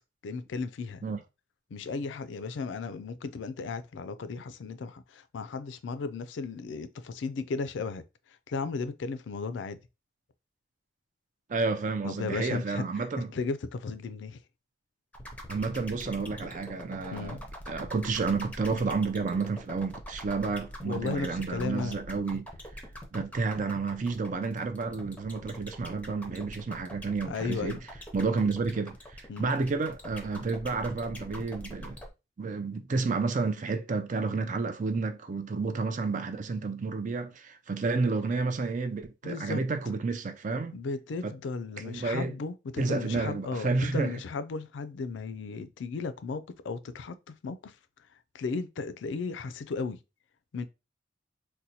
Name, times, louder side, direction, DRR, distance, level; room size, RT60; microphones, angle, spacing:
voice 1, 0.2-1.0 1.7-8.0 8.5-9.8 12.0-13.1 13.3-14.4 17.1-17.4 20.8-22.0 27.2-27.8 29.3-29.5 39.2-39.6 40.7-47.8 48.3-50.0 50.5-50.7, left 4 dB, 75° left, 0.4 m, -35 dB
voice 2, 11.5-13.3 15.5-17.4 17.7-22.5 23.1-27.8 28.1-32.0 32.4-40.8 41.2-41.3 41.8-42.3 42.8-44.2, right 4 dB, 45° right, 0.4 m, -30 dB
sound 1, 15.1-32.1, equal, 10° left, 0.6 m, -43 dB
4.0 x 2.2 x 2.8 m
head